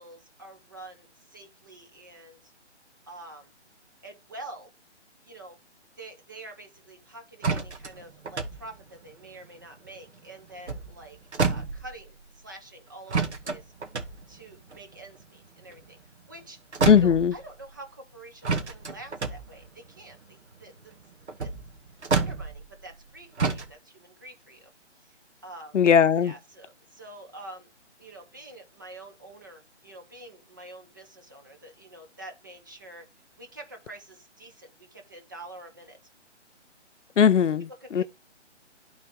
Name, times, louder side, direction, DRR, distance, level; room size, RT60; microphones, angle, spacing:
voice 1, 0.0-2.5 3.1-3.5 4.0-4.7 5.2-5.6 6.0-13.7 14.3-16.0 16.3-16.6 17.0-20.9 21.4-21.5 22.1-24.7 25.0-25.2 25.4-25.8 26.2-27.7 28.0-33.1 33.4-36.0 37.8-38.0, right 2 dB, 15° right, 0.7 m, -46 dB
sound 1, 7.4-10.1 10.5-12.3 13.1-16.4 16.7-17.8 18.4-23.1 23.4-23.7, right 4 dB, 70° right, 1.8 m, -30 dB
voice 2, 16.9-17.3 25.7-26.3 37.2-38.0, left 7 dB, 85° left, 0.7 m, -19 dB
11.5 x 4.0 x 3.6 m
hypercardioid pair, 165°, 36 cm